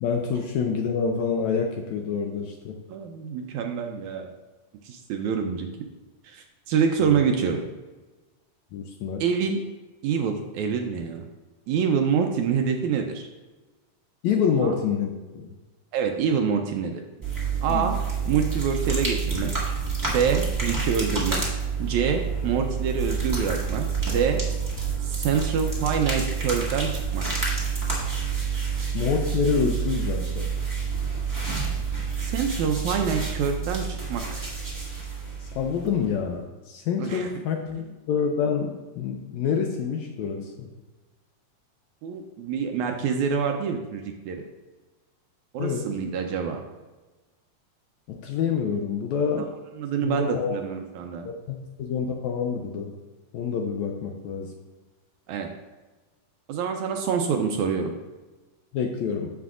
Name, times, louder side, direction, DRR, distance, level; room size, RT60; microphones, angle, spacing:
voice 1, 0.0-2.7 8.7-9.3 14.2-15.5 17.7-17.9 28.9-30.5 35.4-40.7 45.6-45.9 48.1-49.5 50.0-50.6 51.3-52.9 53.3-54.5 58.7-59.3, left 6 dB, 80° left, 2 dB, 1.7 m, -27 dB
voice 2, 2.9-4.3 4.8-5.7 6.2-7.6 9.2-9.6 10.0-11.2 11.7-13.3 14.6-14.7 15.9-17.0 17.6-18.0 18.3-19.5 20.1-21.4 21.8-24.4 25.0-27.2 28.8-28.9 32.2-34.4 37.0-37.3 42.0-44.4 45.5-46.6 49.8-51.3 55.3-55.5 56.5-57.9, right 6 dB, 80° right, 4 dB, 1.8 m, -26 dB
sound 1, 17.2-36.1, right 5 dB, 20° right, 0.5 m, -28 dB
9.3 x 7.3 x 2.4 m, 1.2 s
omnidirectional pair, 3.7 m